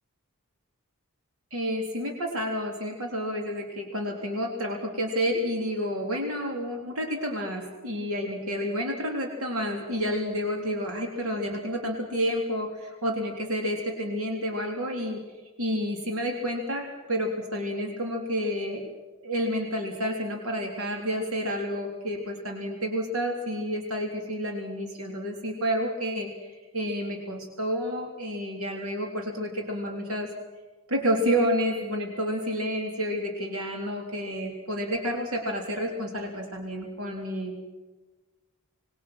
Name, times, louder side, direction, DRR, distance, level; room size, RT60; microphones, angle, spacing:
voice 1, 1.5-15.2 15.6-18.8 19.2-30.3 30.9-37.6, equal, 80° right, 2 dB, 3.9 m, -30 dB
26.5 x 22.5 x 6.3 m, 1.2 s
head